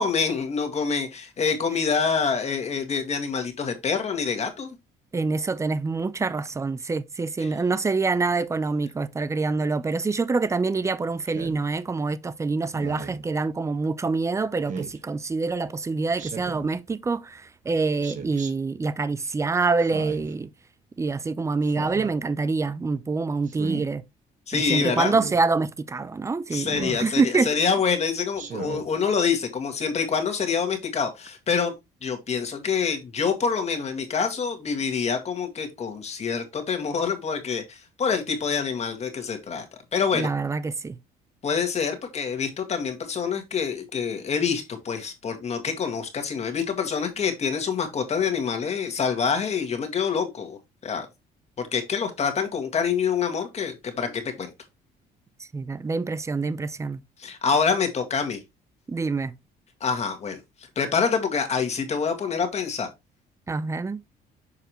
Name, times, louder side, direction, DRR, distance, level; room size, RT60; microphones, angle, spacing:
voice 1, 0.0-4.8 7.4-7.5 24.5-25.2 26.5-31.7 32.0-39.7 39.9-40.3 41.4-51.1 51.6-54.5 57.2-58.4 59.8-60.4 60.8-62.9, left 6 dB, 40° left, 1.9 m, -26 dB
voice 2, 5.1-20.5 21.0-24.0 24.5-27.5 40.1-41.0 55.5-57.0 58.9-59.3 63.5-64.0, right 4 dB, 15° right, 0.5 m, -26 dB
Speech synthesizer, 11.3-11.6 12.7-13.2 14.7-15.0 16.2-16.7 18.0-18.5 19.8-20.3 21.6-22.1 23.5-23.9 25.1-25.4 26.7-27.1 28.3-28.9, right 5 dB, 50° right, 1.4 m, -36 dB
6.7 x 4.8 x 3.0 m
cardioid pair, 110°, 17 cm